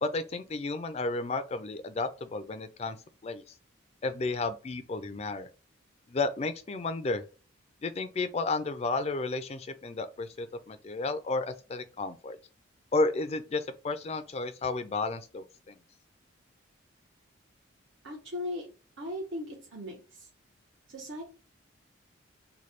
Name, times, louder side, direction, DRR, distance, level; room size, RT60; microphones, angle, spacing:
voice 1, 0.0-3.0 3.2-3.4 4.0-5.5 6.1-7.2 7.8-12.4 12.9-15.8, left 3 dB, 30° left, 0.3 m, -32 dB
voice 2, 18.0-18.7 19.0-20.3 20.9-21.2, left 1 dB, 80° right, 1.0 m, -38 dB
3.1 x 2.2 x 4.2 m
head